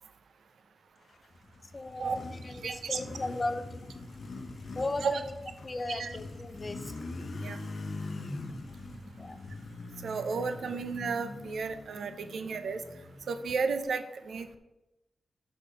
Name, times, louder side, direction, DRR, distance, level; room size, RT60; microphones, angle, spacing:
Motorcycle, 1.1-13.8, left 2 dB, 50° left, 0.9 m, -43 dB
voice 1, 1.7-3.7 4.7-5.3 5.6-6.9 9.2-9.5, left 2 dB, 25° left, 10 dB, 0.6 m, -36 dB
voice 2, 2.5-3.2 5.0-5.2 5.9-6.1 7.4-7.6 10.0-12.8 13.3-14.6, right 5 dB, 80° right, 9 dB, 0.6 m, -33 dB
6.7 x 5.3 x 5.1 m, 0.96 s
wide cardioid pair, 155°, 0 cm